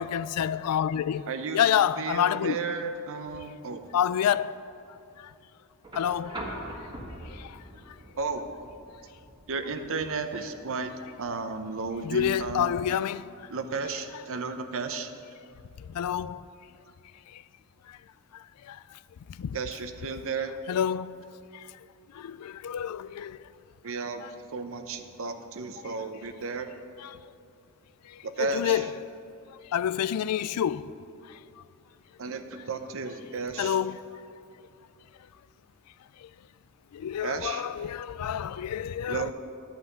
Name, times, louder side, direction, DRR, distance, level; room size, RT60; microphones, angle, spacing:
voice 1, 0.0-1.3 1.5-2.6 3.9-4.6 5.2-5.3 5.9-6.5 7.3-7.6 12.0-13.3 15.8-16.4 17.3-17.4 18.3-18.8 19.4-19.6 20.7-21.2 21.5-21.6 22.1-23.4 27.0-27.1 28.1-28.9 29.7-30.9 33.6-34.0 36.2-36.3 36.9-39.3, left 9 dB, 90° left, 0.3 m, -28 dB
voice 2, 1.3-1.7 2.0-3.9 8.2-8.5 9.5-10.9 11.2-12.8 13.5-15.1 19.5-20.5 23.8-24.3 24.5-26.7 28.2-28.9 32.2-33.8 37.2-37.7 39.1-39.3, right 4 dB, 65° right, 0.8 m, -33 dB
sound 1, 5.8-13.9 15.3-15.4, right 1 dB, 20° right, 1.7 m, -44 dB
11.5 x 5.8 x 8.2 m
head